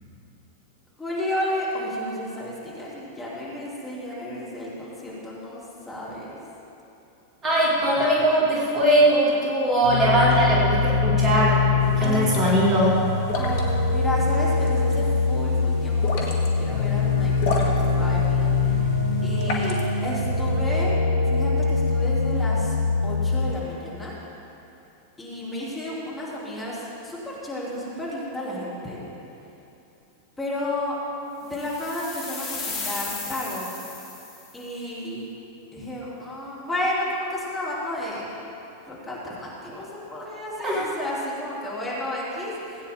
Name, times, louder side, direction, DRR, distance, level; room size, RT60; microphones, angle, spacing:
voice 1, 1.0-5.6 5.9-6.4 12.0-12.3 13.3-18.9 19.2-21.0 21.2-22.7 23.0-24.1 25.2-29.0 30.4-31.0 31.4-33.7 34.5-35.3 35.7-38.3 38.9-42.9, left 1 dB, 10° left, -7 dB, 2.9 m, -32 dB
voice 2, 7.4-11.6 12.0-13.0 40.6-40.8, right 1 dB, 25° right, -5 dB, 2.3 m, -20 dB
sound 1, 9.8-23.5, left 4 dB, 90° left, 0.8 m, -23 dB
sound 2, 11.8-20.3, left 3 dB, 50° left, 1.6 m, -34 dB
sound 3, 31.5-34.6, left 4 dB, 35° left, 2.5 m, -35 dB
17.5 x 9.0 x 3.7 m, 2.9 s
figure-of-eight pair, 90°, 0 cm